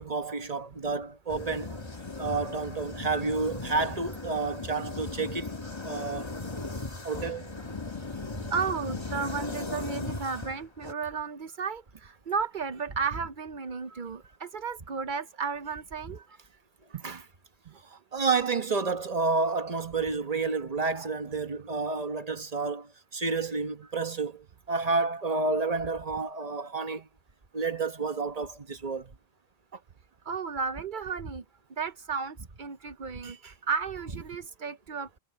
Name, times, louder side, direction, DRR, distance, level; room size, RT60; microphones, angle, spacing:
voice 1, 0.0-1.8 2.2-5.5 5.8-6.3 7.0-7.5 17.0-17.2 18.1-27.1 27.5-29.1, right 4 dB, 40° right, 1.2 m, -30 dB
sound 1, 1.3-10.9, left 3 dB, 25° left, 1.5 m, -37 dB
voice 2, 8.5-16.2 16.9-17.0 17.7-18.0 21.0-21.1 30.3-31.4 31.8-35.2, right 5 dB, 55° right, 0.8 m, -34 dB
omnidirectional pair, 1.1 m